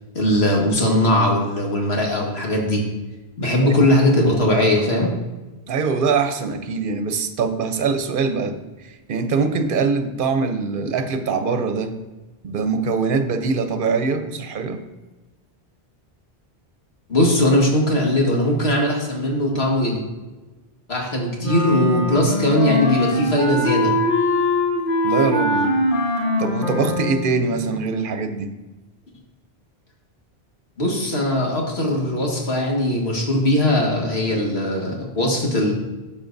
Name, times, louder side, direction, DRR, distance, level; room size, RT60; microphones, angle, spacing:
voice 1, 0.2-2.8 3.4-5.1 17.1-20.0 20.9-23.9 30.8-35.7, left 1 dB, 85° left, -1 dB, 2.0 m, -19 dB
voice 2, 5.7-8.6 8.8-11.9 12.4-14.8 25.0-25.7 26.4-28.5, right 4 dB, 60° right, 8 dB, 0.9 m, -23 dB
Wind instrument woodwind instrument, 21.4-27.3, left 1 dB, 55° left, 1.5 m, -22 dB
12.0 x 6.9 x 2.6 m, 1.1 s
omnidirectional pair, 1.0 m